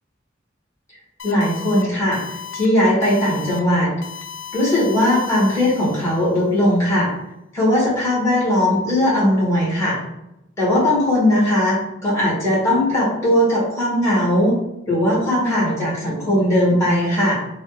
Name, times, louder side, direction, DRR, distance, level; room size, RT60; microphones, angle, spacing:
sound 1, 1.2-1.8 2.1-2.7 3.0-3.6 4.0-6.3, left 8 dB, 65° left, 0.3 m, -36 dB
voice 1, 1.2-2.2 2.5-3.9 4.5-7.1 7.5-10.0 10.6-14.5 14.9-17.4, left 1 dB, 15° left, -6 dB, 1.4 m, -18 dB
3.2 x 2.4 x 3.1 m, 0.88 s
head